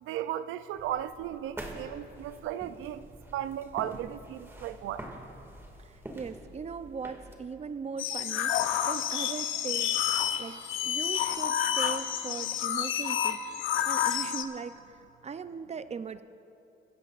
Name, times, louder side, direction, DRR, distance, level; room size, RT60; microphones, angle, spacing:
voice 1, 0.0-3.0 3.3-5.0, right 11 dB, 90° right, 0.5 m, -35 dB
sound 1, 0.7-7.3, right 1 dB, 10° right, 2.1 m, -46 dB
voice 2, 5.8-10.6 10.8-15.0 15.2-16.2, right 5 dB, 35° right, 0.6 m, -39 dB
sound 2, 8.0-14.4, left 10 dB, 90° left, 0.7 m, -29 dB
24.0 x 15.5 x 2.5 m
cardioid pair, 90°, 20 cm